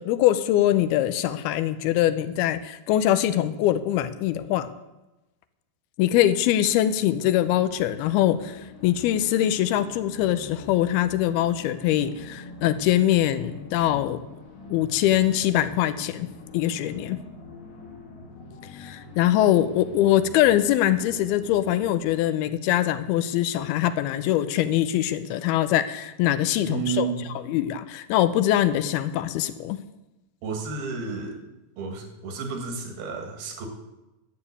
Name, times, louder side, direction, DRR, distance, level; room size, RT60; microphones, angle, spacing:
voice 1, 0.0-4.7 6.0-14.2 14.7-16.3 16.5-17.2 18.8-27.1 27.5-29.8, left 12 dB, 85° left, 11 dB, 2.6 m, -23 dB
sound 1, 6.0-22.2, left 3 dB, 70° left, 3.7 m, -45 dB
voice 2, 26.7-27.3 30.4-31.4 31.8-33.7, right 5 dB, 75° right, 4 dB, 3.6 m, -31 dB
11.5 x 7.1 x 8.4 m, 1.0 s
omnidirectional pair, 4.4 m